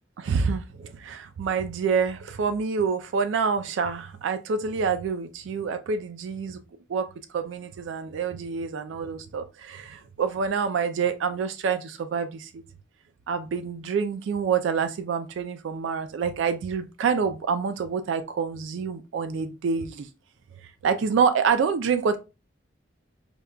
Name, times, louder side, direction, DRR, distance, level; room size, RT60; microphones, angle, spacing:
voice 1, 0.2-6.6 6.9-12.6 13.3-20.1 20.8-22.2, right 6 dB, 80° right, 0.3 m, -27 dB
5.1 x 2.2 x 2.2 m
head